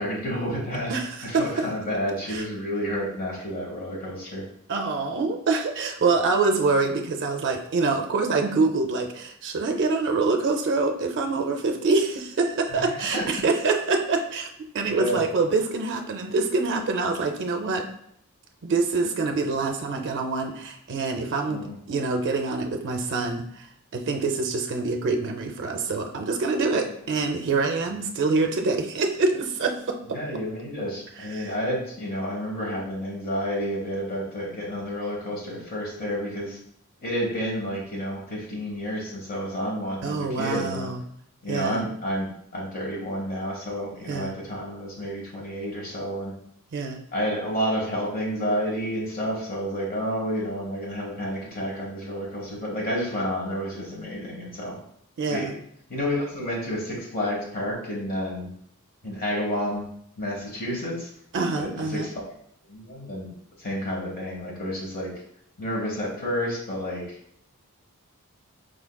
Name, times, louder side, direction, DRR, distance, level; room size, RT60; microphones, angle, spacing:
voice 1, 0.0-4.4 12.7-13.4 14.8-15.2 21.5-21.7 30.1-36.6 37.0-40.9 41.4-46.3 47.1-54.8 55.3-55.5 55.9-58.5 59.0-59.9 60.2-61.1 61.6-62.3 62.7-63.3 63.6-65.1 65.6-67.2, equal, 40° left, -3 dB, 1.2 m, -30 dB
voice 2, 0.9-1.4 2.3-2.4 4.7-14.5 14.7-17.8 18.6-23.7 23.9-30.0 31.2-31.5 40.0-41.0 41.5-41.9 44.1-44.3 46.7-47.0 55.2-55.6 61.3-62.1, right 3 dB, 55° right, 3 dB, 0.5 m, -25 dB
4.9 x 3.6 x 2.2 m, 0.69 s
head